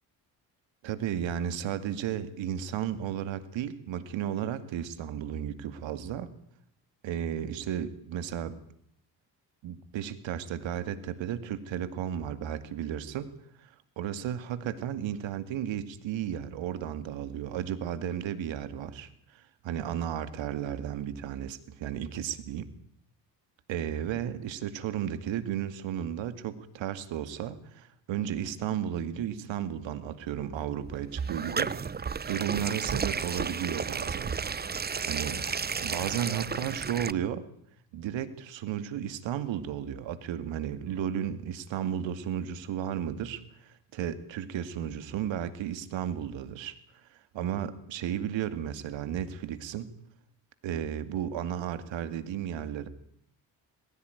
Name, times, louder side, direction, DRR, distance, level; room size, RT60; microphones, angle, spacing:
voice 1, 0.8-6.3 7.0-8.6 9.6-13.3 13.6-22.7 23.7-34.3 35.1-35.4 35.8-37.4 37.9-46.8 47.1-49.9 50.6-52.9, right 9 dB, 65° right, 11 dB, 2.4 m, -34 dB
sound 1, 30.8-37.1, right 5 dB, 20° right, 0.8 m, -33 dB
20.5 x 16.0 x 9.4 m, 0.70 s
hypercardioid pair, 55°, 48 cm